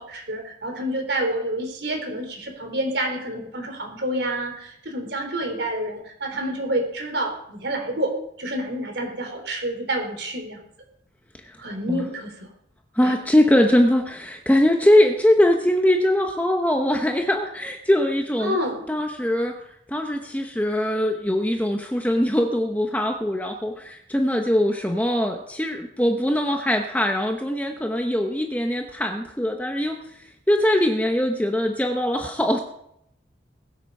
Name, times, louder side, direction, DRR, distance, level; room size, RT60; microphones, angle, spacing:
voice 1, 0.0-8.1 8.4-10.6 11.6-12.5 13.0-13.1 18.4-18.8, right 1 dB, 65° right, 4 dB, 3.6 m, -28 dB
voice 2, 13.0-18.5 18.9-19.6 19.9-30.0 30.5-32.6, left 1 dB, 10° left, 3 dB, 0.9 m, -21 dB
20.5 x 8.1 x 5.5 m, 0.77 s
head